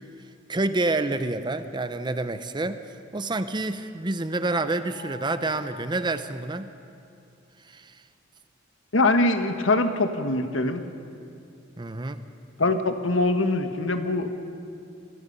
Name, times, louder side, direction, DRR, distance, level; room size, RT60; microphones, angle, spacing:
voice 1, 0.5-2.8 3.1-6.7 7.7-7.9 11.8-12.2, right 2 dB, 25° right, 11 dB, 0.8 m, -28 dB
Mallet percussion, 4.9-6.9, left 4 dB, 45° left, 7.8 m, -49 dB
voice 2, 8.9-10.8 12.6-14.4, left 2 dB, 85° left, 7 dB, 1.5 m, -23 dB
26.5 x 20.5 x 5.5 m, 2.5 s
head